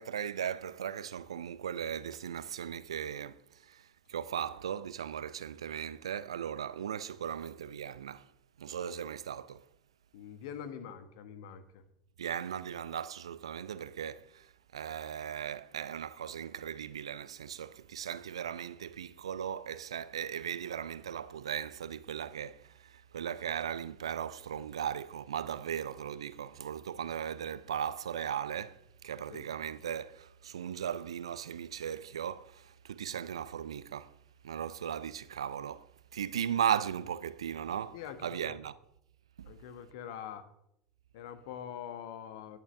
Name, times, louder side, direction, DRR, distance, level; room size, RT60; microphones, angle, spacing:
voice 1, 0.0-8.3 8.6-9.7 12.2-34.1 34.4-38.0 38.2-38.8 39.4-39.5, right 9 dB, 75° right, 0.5 m, -37 dB
voice 2, 10.1-11.8 29.3-29.4 37.9-38.6 39.4-40.5 41.1-42.6, left 9 dB, 65° left, 1.4 m, -44 dB
18.0 x 10.5 x 3.4 m
figure-of-eight pair, 75°, 3 cm